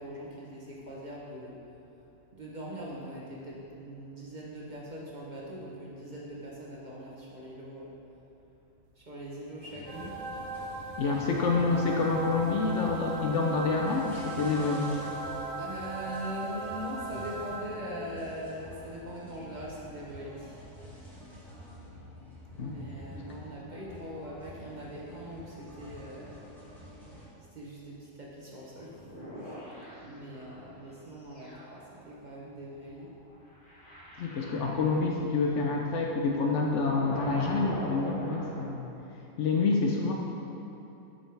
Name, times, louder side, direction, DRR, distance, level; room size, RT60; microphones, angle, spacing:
voice 1, 0.0-1.6 2.3-7.9 9.0-10.2 15.6-20.6 22.6-26.4 27.5-29.1 29.3-29.7 30.0-33.1, equal, 40° right, -5 dB, 0.9 m, -42 dB
sound 1, 9.6-27.2, equal, ahead, 1.4 m, -48 dB
sound 2, 9.9-18.1, right 2 dB, 75° right, 0.9 m, -38 dB
voice 2, 11.0-14.9 22.6-22.7 34.2-38.8 39.4-40.1, left 4 dB, 70° left, 0 dB, 0.9 m, -27 dB
sound 3, 28.8-30.6 31.2-38.6, equal, 40° left, 1.5 m, -43 dB
8.8 x 5.4 x 3.3 m, 3.0 s
omnidirectional pair, 1.3 m